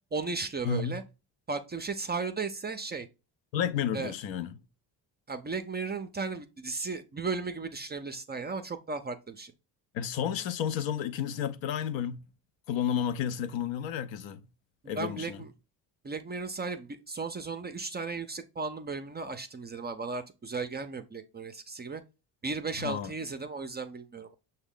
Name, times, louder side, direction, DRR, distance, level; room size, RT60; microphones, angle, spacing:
voice 1, 0.1-1.0 1.5-3.1 3.9-4.1 5.3-9.5 14.8-15.5 16.0-22.0 22.4-24.4, right 4 dB, 20° right, 0.4 m, -35 dB
voice 2, 0.6-1.0 3.5-4.5 9.9-12.3 12.7-14.4 14.9-15.4 22.8-23.1, left 8 dB, 65° left, 0.6 m, -31 dB
6.0 x 2.2 x 3.6 m
supercardioid pair, 60°, 49 cm